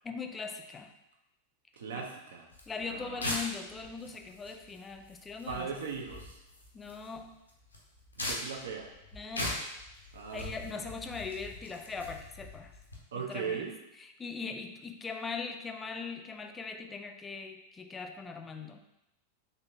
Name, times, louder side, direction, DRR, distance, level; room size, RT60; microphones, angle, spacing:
voice 1, 0.0-0.9 1.9-2.1 2.7-5.7 6.7-7.4 9.1-9.6 10.3-12.7 13.1-13.7 14.0-18.8, left 5 dB, 15° left, 5 dB, 0.4 m, -40 dB
voice 2, 1.8-2.5 2.9-3.3 5.5-6.4 8.2-8.9 10.1-10.6 13.1-13.7, right 6 dB, 65° right, 1 dB, 0.6 m, -38 dB
sound 1, 2.5-13.0, left 1 dB, 85° left, 0.7 m, -41 dB
4.0 x 3.3 x 2.7 m, 0.89 s
figure-of-eight pair, 90°, 0 cm